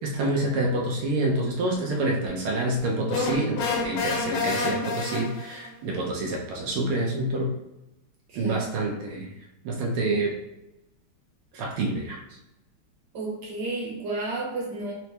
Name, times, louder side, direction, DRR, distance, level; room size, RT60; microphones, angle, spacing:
voice 1, 0.0-7.5 8.3-9.3 9.6-10.4 11.5-12.2, right 2 dB, 90° right, -1 dB, 1.7 m, -27 dB
sound 1, 3.1-5.7, left 4 dB, 75° left, 1.6 m, -28 dB
voice 2, 13.1-14.9, right 2 dB, 60° right, -3 dB, 1.6 m, -32 dB
4.3 x 2.9 x 3.2 m, 0.93 s
omnidirectional pair, 2.3 m